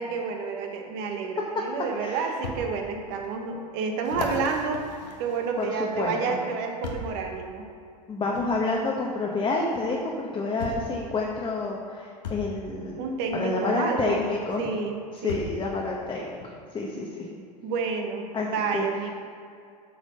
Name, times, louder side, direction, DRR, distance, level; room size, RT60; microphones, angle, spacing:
voice 1, 0.0-4.8 5.2-7.6 13.0-14.2 14.6-15.5 17.6-19.1, right 5 dB, 55° right, 3 dB, 1.4 m, -30 dB
sound 1, 1.3-1.4 2.4-2.6 3.2-3.3 4.0-5.9 6.8-7.2 8.3-8.5 9.8-9.9 10.6-10.9 12.2-12.5 14.1-14.2 15.3-15.6 16.4-16.5, left 3 dB, 90° left, 1.2 m, -36 dB
voice 2, 2.0-2.3 5.6-6.4 8.1-13.1 13.3-14.7 15.1-17.3 18.3-18.9, left 3 dB, 20° left, -2 dB, 1.0 m, -29 dB
8.2 x 4.8 x 5.4 m, 2.3 s
hypercardioid pair, 105°, 21 cm